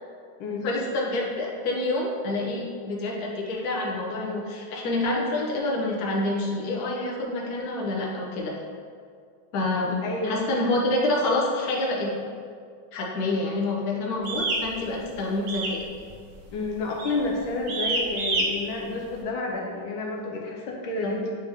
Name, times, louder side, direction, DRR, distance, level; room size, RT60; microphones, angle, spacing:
voice 1, 0.5-8.5 9.5-10.0 10.2-12.1 12.9-15.8 21.0-21.2, left 2 dB, 55° left, -3 dB, 1.3 m, -27 dB
voice 2, 10.0-10.7 16.5-21.3, left 3 dB, 80° left, 0 dB, 1.5 m, -30 dB
sound 1, 14.2-14.6 15.5-15.8 16.1-16.4 17.0-17.2 17.7-18.5, right 2 dB, 60° right, 0.8 m, -27 dB
7.8 x 3.5 x 3.5 m, 2.2 s
omnidirectional pair, 2.2 m